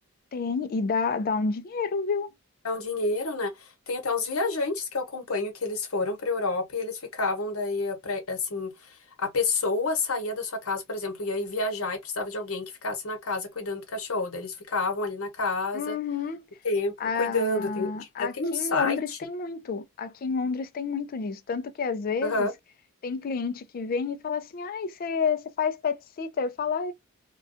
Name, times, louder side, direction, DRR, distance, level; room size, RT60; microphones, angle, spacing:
voice 1, 0.3-2.3 15.7-16.5 17.0-22.5 23.0-26.9, left 5 dB, 40° left, 0.3 m, -29 dB
voice 2, 2.6-16.0 16.6-16.9 17.2-19.2 22.2-22.5, left 3 dB, 75° left, 0.9 m, -29 dB
2.4 x 2.2 x 2.4 m
head